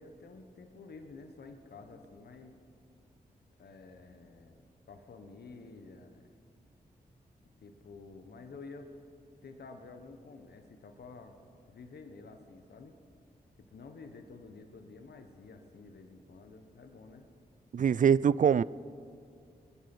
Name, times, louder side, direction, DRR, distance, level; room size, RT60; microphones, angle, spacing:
voice 1, 0.0-2.5 3.6-4.6 4.9-6.3 7.6-8.9 9.4-11.4 11.7-13.0 13.6-17.3, left 4 dB, 75° left, 6 dB, 1.2 m, -50 dB
voice 2, 17.7-18.6, right 7 dB, 50° right, 20 dB, 0.4 m, -23 dB
20.5 x 10.0 x 6.1 m, 2.4 s
cardioid pair, 45°, 17 cm